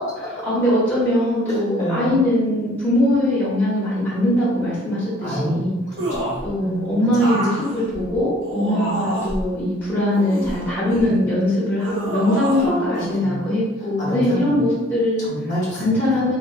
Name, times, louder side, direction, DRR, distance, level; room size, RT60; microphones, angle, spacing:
voice 1, 0.3-5.7 6.4-15.3 15.7-16.4, left 1 dB, 10° left, -11 dB, 0.8 m, -21 dB
voice 2, 1.5-2.2 5.2-7.1 8.7-9.0 12.6-13.4 14.0-14.6 15.2-16.4, equal, 35° left, -6 dB, 1.0 m, -28 dB
sound 1, 6.0-6.5 7.1-9.4 10.1-11.2 11.8-12.7 12.9-13.1, right 1 dB, 70° right, 0.9 m, -28 dB
3.0 x 2.2 x 2.3 m, 1.1 s
head